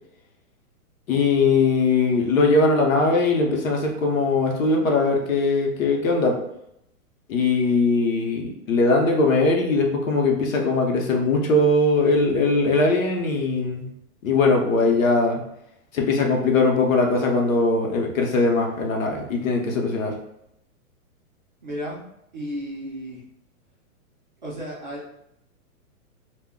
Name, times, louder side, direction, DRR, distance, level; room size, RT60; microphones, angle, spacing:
voice 1, 1.1-6.4 7.3-13.9 14.2-15.4 15.9-20.1, left 3 dB, 65° left, 1 dB, 0.7 m, -20 dB
voice 2, 21.6-22.0 22.3-23.2 24.4-25.1, equal, 35° right, -5 dB, 0.4 m, -33 dB
2.1 x 2.0 x 3.5 m, 0.78 s
hypercardioid pair, 170°, 44 cm